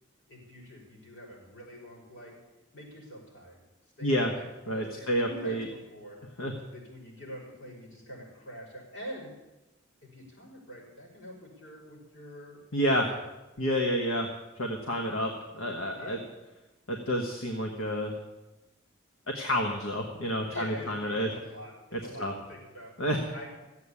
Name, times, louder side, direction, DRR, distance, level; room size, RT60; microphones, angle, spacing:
voice 1, 0.3-2.4 2.7-3.6 4.0-6.2 6.6-9.3 10.0-12.6 12.9-13.2 16.0-16.2 20.5-22.9 23.3-23.5, equal, 70° left, -4 dB, 6.1 m, -45 dB
voice 2, 4.0-4.3 4.7-5.7 6.4-6.5 12.7-13.0 13.6-14.3 14.6-16.2 16.9-18.1 19.3-21.3 21.9-22.3 23.0-23.2, equal, 85° left, 2 dB, 1.5 m, -29 dB
14.5 x 8.2 x 8.5 m, 1.0 s
head